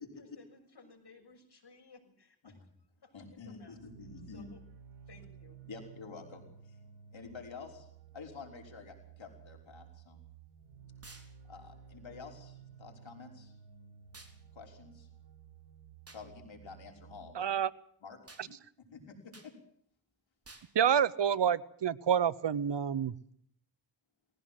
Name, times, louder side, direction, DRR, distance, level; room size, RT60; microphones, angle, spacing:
voice 1, 0.2-2.6 3.0-3.8 4.3-4.6 5.1-5.6, left 4 dB, 55° left, 5 dB, 6.7 m, -58 dB
voice 2, 3.1-4.5 5.7-6.8 7.1-7.9 8.1-10.2 11.5-13.5 14.6-15.1 16.1-17.5 18.0-18.2 18.5-18.6 18.9-19.5, left 5 dB, 75° left, 2 dB, 5.8 m, -49 dB
sound 1, 3.7-17.4, right 7 dB, 85° right, 4.2 m, -55 dB
sound 2, 11.0-11.3 14.1-14.4 16.1-16.3 18.3-18.5 19.3-19.5 20.4-20.7, right 2 dB, 30° right, 4.0 m, -53 dB
voice 3, 17.4-17.7 20.7-23.1, right 8 dB, 65° right, 20 dB, 1.0 m, -28 dB
20.0 x 17.0 x 7.7 m, 0.64 s
cardioid pair, 50°, 46 cm